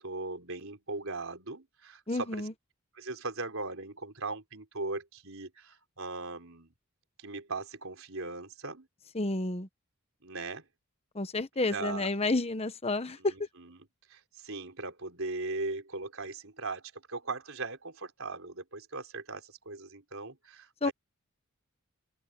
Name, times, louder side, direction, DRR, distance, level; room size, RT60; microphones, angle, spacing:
voice 1, 0.0-2.5 2.9-6.7 7.2-8.9 10.2-10.6 11.7-12.1 13.2-13.8 14.1-20.9, right 3 dB, 65° right, 4.6 m, -39 dB
voice 2, 2.1-2.5 9.1-9.7 11.1-13.3 20.8-20.9, left 2 dB, 30° left, 1.1 m, -30 dB
open air
head